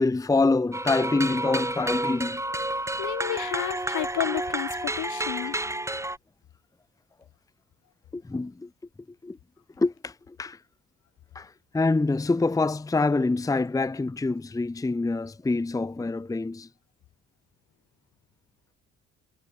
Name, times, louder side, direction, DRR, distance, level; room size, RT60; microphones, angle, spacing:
voice 1, 0.0-2.4 5.4-5.7 8.1-8.7 9.2-9.4 9.8-10.6 11.3-16.7, left 3 dB, 10° left, 0.7 m, -26 dB
sound 1, 0.7-6.2, right 1 dB, 10° right, 4.2 m, -30 dB
voice 2, 3.0-5.6, left 13 dB, 80° left, 4.2 m, -31 dB
cardioid pair, 90°, 30 cm